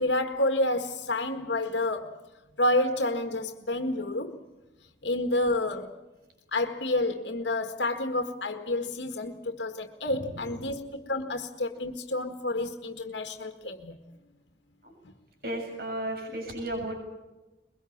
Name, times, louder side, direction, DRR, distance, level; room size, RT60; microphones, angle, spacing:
voice 1, 0.0-2.2 2.6-4.4 5.0-6.0 6.5-14.0 15.0-15.1, left 2 dB, 80° left, 5 dB, 1.8 m, -29 dB
voice 2, 10.1-10.7 14.8-14.9 15.4-16.9, right 1 dB, 55° right, 2 dB, 7.2 m, -35 dB
22.5 x 22.5 x 7.2 m, 1.1 s
head